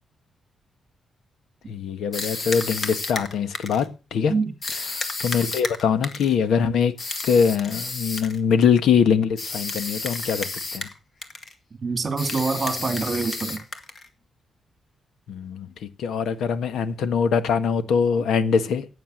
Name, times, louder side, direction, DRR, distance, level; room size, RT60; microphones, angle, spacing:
voice 1, 1.7-4.3 4.9-6.9 7.2-10.9 15.3-18.9, left 6 dB, 85° left, 1.5 m, -23 dB
sound 1, 2.1-3.9 4.6-6.3 7.0-8.4 9.4-11.0 11.2-11.5 12.2-14.1, left 3 dB, 35° left, 1.9 m, -31 dB
voice 2, 11.8-13.6, right 4 dB, 30° right, 2.8 m, -25 dB
15.5 x 9.2 x 6.5 m
wide cardioid pair, 155°, 0 cm